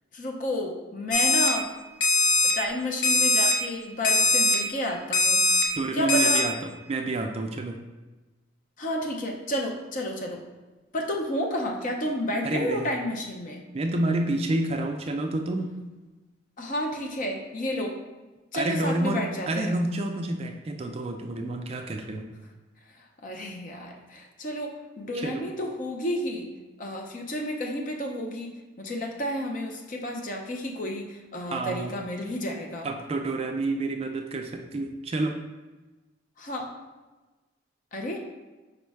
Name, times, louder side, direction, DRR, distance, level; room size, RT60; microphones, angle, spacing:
voice 1, 0.1-1.7 2.4-5.6 5.9-6.4 8.8-10.4 10.9-13.7 16.6-18.0 18.5-19.8 23.2-26.5 26.8-32.9 36.4-36.7 37.9-38.2, left 1 dB, 40° left, 1 dB, 0.6 m, -31 dB
Alarm, 1.1-1.5 2.0-2.5 3.0-3.5 4.0-4.5 5.1-5.6 6.1-6.4, left 2 dB, 80° left, 0.8 m, -21 dB
voice 2, 5.8-6.5 6.9-7.8 12.4-12.9 13.7-15.7 18.5-22.3 25.1-25.4 31.5-31.9 32.8-35.3, right 2 dB, 30° right, 4 dB, 0.3 m, -29 dB
5.1 x 2.1 x 4.6 m, 1.2 s
head